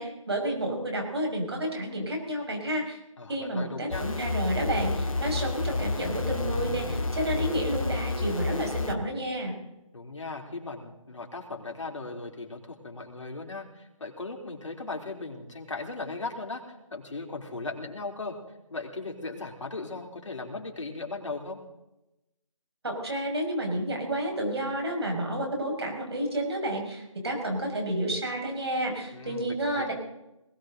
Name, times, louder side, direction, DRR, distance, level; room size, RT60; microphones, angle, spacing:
voice 1, 0.0-3.0 3.3-9.5 22.8-29.9, right 1 dB, 50° right, 2 dB, 5.8 m, -30 dB
voice 2, 3.2-4.1 7.3-7.6 9.9-16.6 16.9-18.4 18.7-21.6 29.1-29.9, left 3 dB, 60° left, 1 dB, 3.9 m, -37 dB
sound 1, 3.9-8.9, left 3 dB, 80° left, 2.2 m, -30 dB
20.5 x 18.0 x 3.9 m, 0.92 s
figure-of-eight pair, 180°, 17 cm